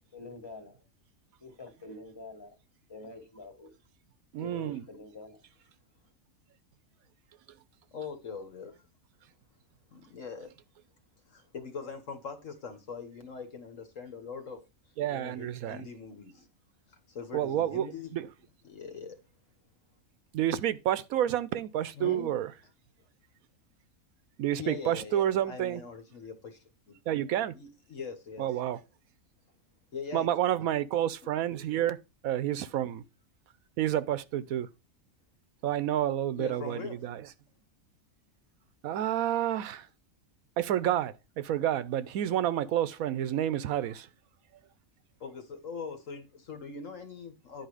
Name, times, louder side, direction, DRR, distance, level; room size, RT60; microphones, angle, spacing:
voice 1, 0.1-0.8 1.4-2.6 2.9-3.7 4.4-5.4, left 3 dB, 20° left, 1.7 m, -46 dB
voice 2, 4.3-4.8 15.0-15.9 17.3-17.9 18.1-18.3 20.3-22.5 24.4-25.8 27.1-27.5 28.4-28.8 30.1-33.0 33.8-34.7 35.6-37.3 38.8-39.9 40.6-44.1, right 11 dB, 90° right, 1.1 m, -29 dB
voice 3, 7.9-8.8 9.9-10.5 11.3-14.6 15.1-16.5 16.9-18.1 18.6-19.2 22.0-22.4 24.6-27.0 27.5-28.5 29.9-30.3 36.4-37.0 45.2-47.7, left 5 dB, 65° left, 1.8 m, -42 dB
10.5 x 4.5 x 4.8 m
omnidirectional pair, 1.4 m